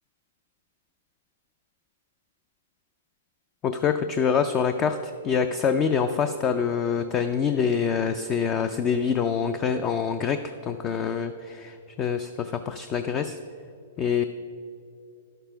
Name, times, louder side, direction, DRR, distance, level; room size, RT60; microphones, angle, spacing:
voice 1, 3.6-13.4 14.0-14.2, left 6 dB, 20° left, 10 dB, 0.3 m, -25 dB
11.5 x 6.8 x 5.7 m, 2.6 s
hypercardioid pair, 160°, 0 cm